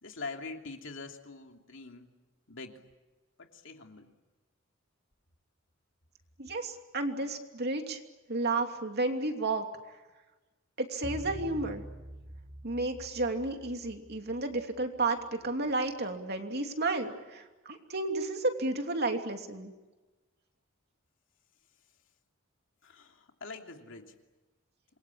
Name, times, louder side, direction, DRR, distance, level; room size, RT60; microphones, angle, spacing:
voice 1, 0.0-2.1 2.5-2.8 3.4-4.1 22.8-24.1, left 3 dB, 65° left, 3 dB, 3.0 m, -44 dB
voice 2, 6.4-8.0 8.3-9.6 10.8-11.8 12.6-19.7, right 2 dB, 50° right, 4 dB, 2.9 m, -32 dB
sound 1, 11.0-15.5, right 1 dB, 25° right, 4.0 m, -46 dB
27.5 x 23.0 x 8.8 m, 1.2 s
head